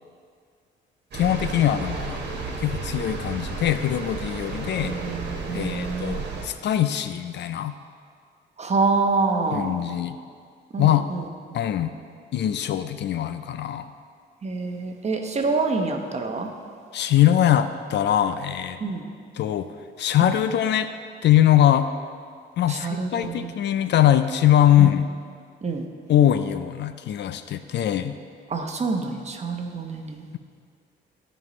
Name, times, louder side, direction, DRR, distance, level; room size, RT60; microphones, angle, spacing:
voice 1, 1.1-2.2 2.6-4.9 5.5-7.8 9.5-10.2 10.8-11.0 11.5-11.9 12.3-13.9 16.9-18.8 19.3-19.7 20.0-20.9 21.2-21.9 22.6-25.1 26.1-28.1, left 11 dB, 60° left, 11 dB, 0.5 m, -22 dB
sound 1, 1.1-6.4, right 4 dB, 55° right, 1.5 m, -32 dB
voice 2, 4.8-6.1 8.6-9.8 10.7-11.2 14.4-16.5 18.8-19.0 22.7-23.5 24.8-24.9 25.6-25.8 28.5-30.2, right 3 dB, 35° right, 3 dB, 1.0 m, -26 dB
14.5 x 5.4 x 3.2 m, 2.1 s
cardioid pair, 90°, 20 cm